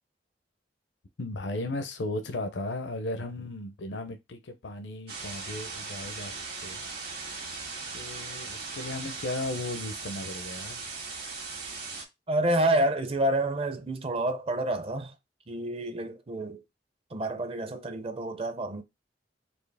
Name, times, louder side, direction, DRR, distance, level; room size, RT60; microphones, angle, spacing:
voice 1, 1.2-6.8 7.9-10.8, left 2 dB, 75° left, 0.6 m, -36 dB
sound 1, 5.1-12.0, right 4 dB, 60° right, 1.6 m, -38 dB
voice 2, 12.3-15.1 15.5-16.6 17.1-18.8, right 1 dB, 35° right, 0.6 m, -28 dB
4.4 x 2.8 x 3.3 m
head